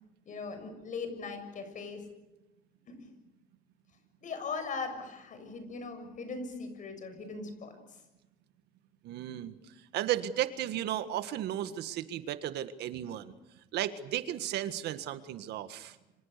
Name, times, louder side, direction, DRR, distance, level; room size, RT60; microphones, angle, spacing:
voice 1, 0.2-2.0 2.9-3.0 4.2-7.7, left 4 dB, 50° left, 8 dB, 6.8 m, -39 dB
voice 2, 9.0-9.5 9.9-13.3 13.7-15.9, right 12 dB, 80° right, 11 dB, 1.7 m, -34 dB
29.0 x 25.5 x 6.8 m, 0.97 s
cardioid pair, 110°, 17 cm